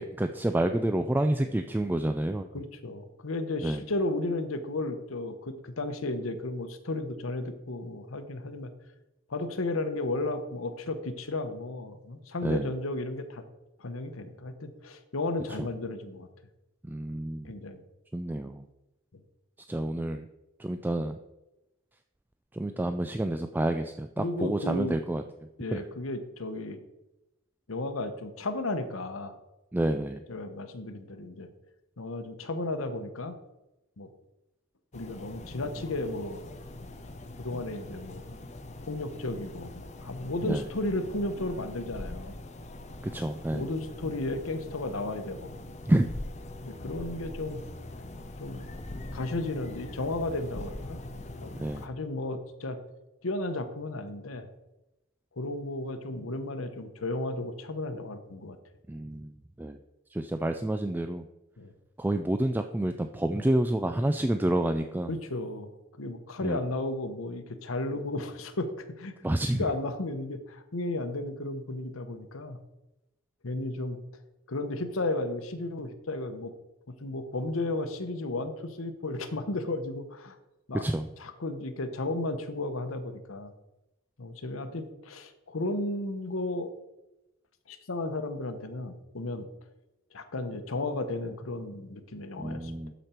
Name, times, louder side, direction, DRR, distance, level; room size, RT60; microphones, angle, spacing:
voice 1, 0.0-2.5 3.6-3.8 12.4-12.7 15.6-15.7 16.8-17.5 18.1-18.6 19.7-20.2 20.6-21.2 22.5-25.2 25.7-25.8 29.7-30.2 40.4-40.6 43.0-43.7 45.9-46.1 51.6-51.9 58.9-59.8 60.1-61.3 62.0-65.1 66.4-66.6 69.2-69.6 80.7-81.1 92.4-92.9, right 1 dB, 10° right, 7 dB, 0.3 m, -29 dB
voice 2, 2.5-8.7 9.3-13.4 13.8-16.3 17.4-17.8 24.2-25.0 25.6-26.8 27.7-29.3 30.3-31.5 32.0-33.4 34.0-34.1 34.9-36.5 37.4-38.2 38.8-42.4 43.5-45.5 46.6-47.6 48.4-48.6 49.1-51.0 51.3-51.5 51.8-52.8 53.2-54.5 55.4-58.6 61.6-61.7 65.1-65.7 66.0-69.1 69.5-72.6 73.4-74.0 74.5-76.5 76.9-80.4 80.7-80.8 81.2-83.5 84.2-86.7 87.7-89.5 90.1-92.7, left 2 dB, 80° left, 8 dB, 1.0 m, -34 dB
sound 1, 34.9-51.9, left 2 dB, 35° left, 0.7 m, -42 dB
12.5 x 5.1 x 4.4 m, 0.96 s
head